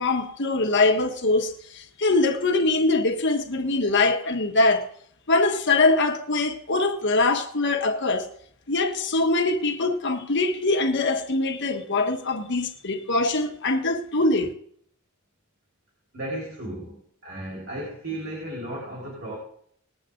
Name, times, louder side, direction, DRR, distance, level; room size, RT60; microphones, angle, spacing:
voice 1, 0.0-4.9 5.3-8.3 8.7-14.5, left 2 dB, 60° left, 1.6 m, -23 dB
voice 2, 16.1-19.4, right 1 dB, 55° right, 4.6 m, -34 dB
20.5 x 8.4 x 3.9 m
head